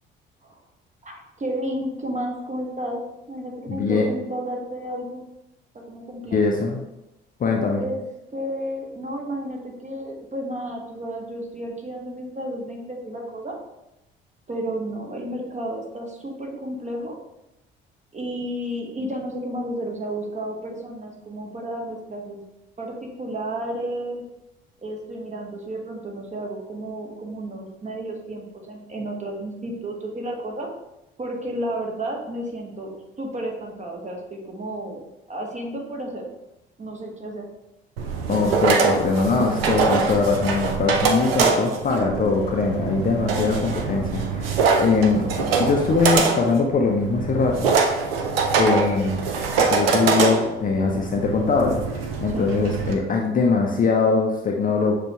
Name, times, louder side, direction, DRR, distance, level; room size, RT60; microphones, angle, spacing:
voice 1, 1.0-3.0 3.3-5.2 5.9-6.5 7.8-8.0 8.3-13.6 14.5-17.2 18.1-22.4 22.8-24.2 24.8-30.7 31.2-32.9 33.2-35.0 35.3-36.2 36.8-37.5 43.3-43.6 52.3-52.5, right 1 dB, 25° right, 1 dB, 1.0 m, -32 dB
voice 2, 3.7-4.0 6.3-6.8 7.4-7.8 38.3-47.7 48.6-49.1 49.6-55.0, left 4 dB, 30° left, 1 dB, 0.5 m, -22 dB
sound 1, 38.0-52.9, right 4 dB, 75° right, 0.5 m, -23 dB
6.6 x 2.2 x 2.9 m, 0.90 s
figure-of-eight pair, 50°, 30 cm